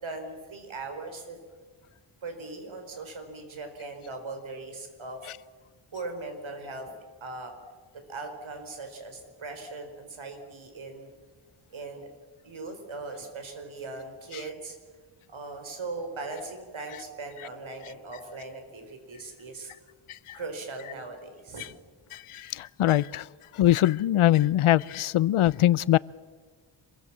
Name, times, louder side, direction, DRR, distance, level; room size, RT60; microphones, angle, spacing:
voice 1, 0.0-1.4 2.2-5.3 5.9-6.9 7.2-7.5 8.1-11.1 11.7-12.1 12.4-14.7 15.3-19.7 20.3-21.7, right 3 dB, 70° right, 4.3 m, -39 dB
voice 2, 22.1-23.3 23.5-26.0, left 13 dB, 85° left, 0.6 m, -23 dB
26.5 x 22.0 x 7.3 m
wide cardioid pair, 155°, 49 cm